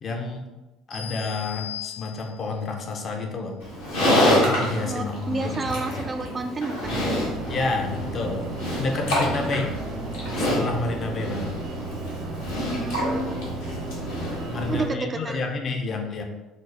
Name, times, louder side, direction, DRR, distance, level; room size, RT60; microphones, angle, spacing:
voice 1, 0.0-0.4 0.9-3.5 4.2-5.9 7.5-8.5 8.8-9.7 10.4-11.5 14.5-16.2, left 3 dB, 45° left, 3 dB, 0.5 m, -29 dB
sound 1, 0.9-2.6, left 10 dB, 70° left, 1.3 m, -38 dB
Livestock farm animals working animals, 3.6-14.9, left 1 dB, 85° left, 1.1 m, -27 dB
voice 2, 4.8-7.1 9.3-9.5 12.7-13.4 14.7-15.4, right 3 dB, 30° right, 7 dB, 0.4 m, -30 dB
sound 2, 6.8-14.8, right 2 dB, 65° right, 0.8 m, -34 dB
4.0 x 2.0 x 3.2 m, 1.1 s
hypercardioid pair, 70°, 0 cm